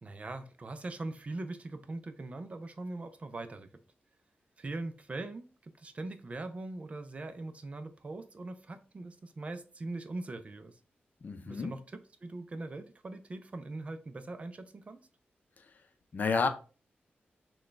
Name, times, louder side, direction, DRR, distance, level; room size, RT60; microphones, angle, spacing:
voice 1, 0.0-3.7 4.6-10.7 11.4-15.0, right 2 dB, 35° right, 9 dB, 0.5 m, -41 dB
voice 2, 11.2-11.7 16.1-16.5, left 4 dB, 50° left, 8 dB, 0.6 m, -30 dB
6.1 x 2.3 x 3.2 m, 0.36 s
wide cardioid pair, 150°, 4 cm